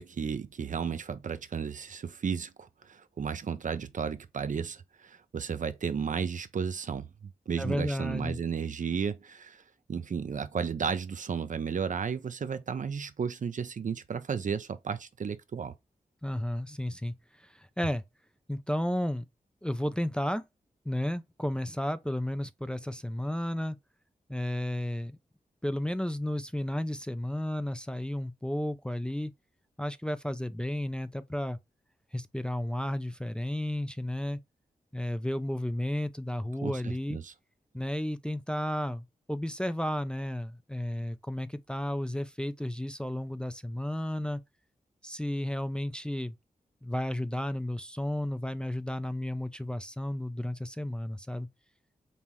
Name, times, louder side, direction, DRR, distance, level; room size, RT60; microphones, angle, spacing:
voice 1, 0.0-7.1 7.5-9.6 9.9-15.7 36.6-36.8 37.1-37.3, right 6 dB, 55° right, 0.5 m, -33 dB
voice 2, 7.6-8.4 16.2-18.0 18.5-19.2 19.6-20.4 20.9-23.8 24.3-25.2 25.6-29.3 29.8-31.6 32.1-34.4 34.9-37.2 37.7-44.4 45.0-46.4 46.8-51.5, left 1 dB, 5° left, 0.4 m, -33 dB
5.4 x 2.0 x 2.9 m
cardioid pair, 50°, 15 cm